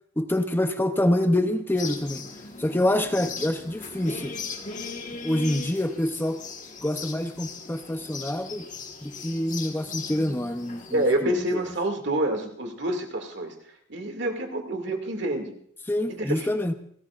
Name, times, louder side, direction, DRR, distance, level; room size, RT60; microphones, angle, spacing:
voice 1, 0.2-2.2 2.6-4.3 5.2-6.4 6.8-8.7 9.0-11.4 15.9-16.7, left 1 dB, 10° left, 7 dB, 0.7 m, -26 dB
sound 1, 1.7-11.2, left 4 dB, 40° left, 1.5 m, -38 dB
voice 2, 10.9-15.5 16.1-16.5, right 1 dB, 60° right, 4 dB, 2.3 m, -28 dB
30.0 x 14.0 x 2.5 m, 0.64 s
head